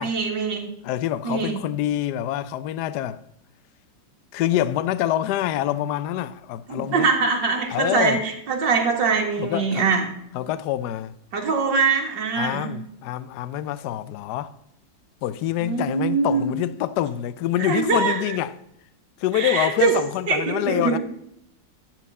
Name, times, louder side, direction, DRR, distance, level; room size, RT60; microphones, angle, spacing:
voice 1, 0.0-0.7 1.2-1.6 6.7-10.0 11.3-12.7 15.6-16.5 17.6-18.4 19.3-20.0 20.3-21.0, right 5 dB, 75° right, 2.4 m, -23 dB
voice 2, 0.8-3.2 4.3-7.1 7.7-8.2 9.4-9.8 10.3-11.1 12.4-14.5 15.2-18.5 19.2-21.0, left 12 dB, 70° left, 1.1 m, -26 dB
13.0 x 4.5 x 8.2 m
omnidirectional pair, 2.0 m